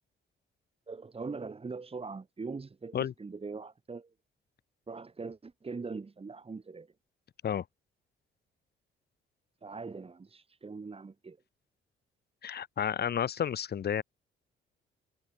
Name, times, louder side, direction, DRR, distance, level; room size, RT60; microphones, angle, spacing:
voice 1, 0.9-4.1 4.9-6.9 9.6-11.4, right 4 dB, 30° right, 5.1 m, -41 dB
voice 2, 12.4-14.0, left 8 dB, 55° left, 1.9 m, -31 dB
cardioid pair, 90°, 20 cm